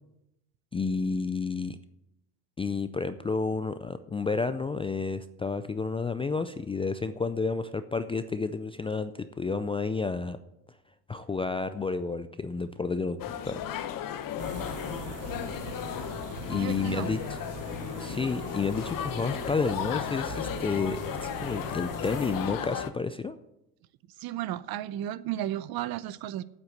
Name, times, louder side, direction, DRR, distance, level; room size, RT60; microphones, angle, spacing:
voice 1, 0.7-1.8 2.6-10.4 11.1-13.6 16.5-17.2 18.0-23.4, left 4 dB, 15° left, 0.3 m, -30 dB
sound 1, 13.2-22.9, left 10 dB, 45° left, 1.0 m, -35 dB
sound 2, 14.4-22.5, right 2 dB, 30° right, 2.8 m, -40 dB
voice 2, 16.5-17.1 24.2-26.4, right 12 dB, 50° right, 0.7 m, -33 dB
8.7 x 7.9 x 7.8 m
supercardioid pair, 90°, 46 cm